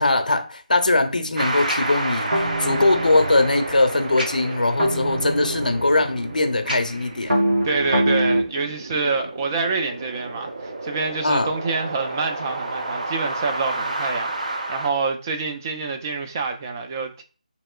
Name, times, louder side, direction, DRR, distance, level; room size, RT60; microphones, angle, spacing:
voice 1, 0.0-7.4 11.2-11.5, left 2 dB, 75° left, 0.6 m, -21 dB
sound 1, 1.4-14.9, right 2 dB, 60° right, 0.7 m, -31 dB
sound 2, 1.7-8.4, right 1 dB, 80° right, 1.0 m, -25 dB
voice 2, 7.6-17.2, right 4 dB, 20° right, 0.4 m, -27 dB
2.9 x 2.9 x 2.3 m
figure-of-eight pair, 160°, 5 cm